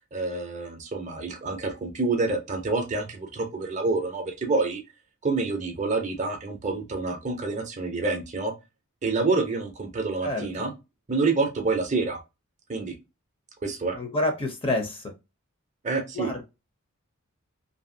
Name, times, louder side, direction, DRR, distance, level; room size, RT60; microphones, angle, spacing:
voice 1, 0.1-4.8 5.2-8.5 9.0-10.7 11.1-12.2 12.7-12.9 13.6-14.0 15.8-16.3, right 3 dB, 35° right, 4 dB, 0.5 m, -27 dB
voice 2, 10.2-10.7 13.9-15.1 16.1-16.4, left 2 dB, 25° left, 4 dB, 0.6 m, -28 dB
2.8 x 2.7 x 2.6 m, 0.25 s
head